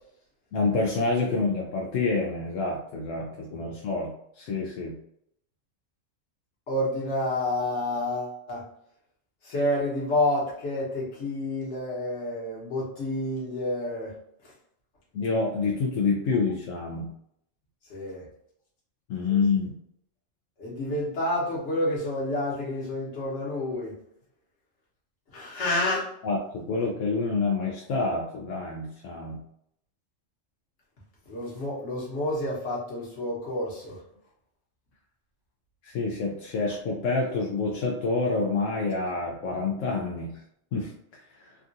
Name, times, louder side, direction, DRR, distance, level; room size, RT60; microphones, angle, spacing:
voice 1, 0.5-5.0 15.1-17.1 19.1-19.7 26.2-29.4 35.8-40.3 40.7-41.6, left 4 dB, 85° left, -1 dB, 1.0 m, -28 dB
voice 2, 6.7-8.6 9.4-14.1 17.9-18.2 19.3-19.4 20.6-23.9 25.3-26.1 31.3-34.0, left 1 dB, 70° left, -5 dB, 1.5 m, -29 dB
3.5 x 2.4 x 2.6 m, 0.72 s
omnidirectional pair, 1.3 m